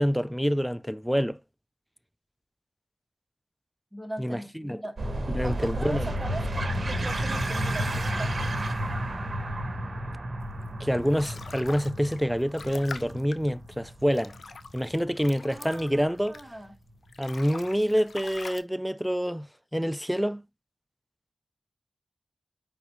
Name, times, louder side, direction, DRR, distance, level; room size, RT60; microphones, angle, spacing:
voice 1, 0.0-1.4 4.2-4.8 5.3-6.1 10.8-14.3 14.7-16.4 17.2-20.4, equal, ahead, 0.3 m, -27 dB
voice 2, 3.9-5.0 5.4-8.5 15.5-16.8, right 1 dB, 20° right, 1.8 m, -40 dB
sound 1, 5.0-16.1, right 1 dB, 50° right, 1.2 m, -32 dB
sound 2, 10.6-16.7 17.0-18.6, left 4 dB, 70° left, 0.5 m, -44 dB
4.9 x 3.5 x 3.0 m
cardioid pair, 45°, 0 cm